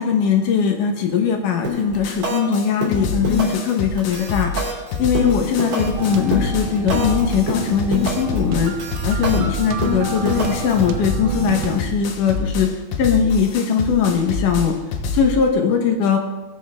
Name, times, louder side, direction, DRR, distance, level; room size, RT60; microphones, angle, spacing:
voice 1, 0.0-8.7 9.0-12.7 13.0-14.8 15.1-16.2, left 7 dB, 65° left, 4 dB, 2.5 m, -20 dB
sound 1, 1.6-1.9 2.2-2.5 2.8-3.7 4.0-7.2 7.5-8.4 8.6-10.8, left 1 dB, 40° right, 3.9 m, -25 dB
sound 2, 1.9-2.2 2.5-2.7 2.9-15.3, left 3 dB, 90° left, 3.1 m, -27 dB
Heroes of the Moon, 6.0-11.8, right 8 dB, 85° right, 1.6 m, -31 dB
21.5 x 7.1 x 3.6 m, 1.1 s
omnidirectional pair, 4.3 m